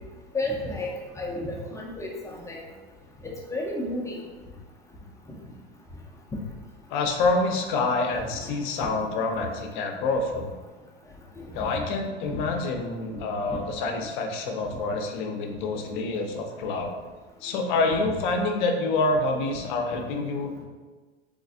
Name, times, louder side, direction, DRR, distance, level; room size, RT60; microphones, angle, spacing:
voice 1, 0.3-0.9 1.2-2.6 3.2-4.2 11.4-11.5 11.8-11.9 12.3-12.4 13.5-13.6 14.7-14.8, left 2 dB, 10° left, -1 dB, 0.5 m, -32 dB
voice 2, 6.9-10.5 11.5-16.9 17.4-20.6, left 3 dB, 50° left, 4 dB, 0.6 m, -27 dB
3.9 x 3.5 x 2.5 m, 1.3 s
figure-of-eight pair, 85°, 32 cm